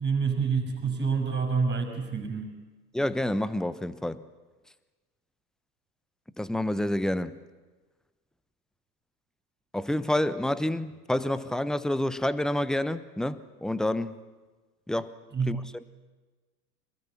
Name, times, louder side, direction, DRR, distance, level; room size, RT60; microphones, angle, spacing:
voice 1, 0.0-2.6 15.3-15.6, right 5 dB, 25° right, 4 dB, 5.8 m, -28 dB
voice 2, 2.9-4.2 6.4-7.4 9.7-14.2 14.9-15.1 15.5-15.8, left 1 dB, ahead, 16 dB, 0.7 m, -28 dB
26.0 x 19.5 x 8.4 m, 1.3 s
figure-of-eight pair, 95°, 47 cm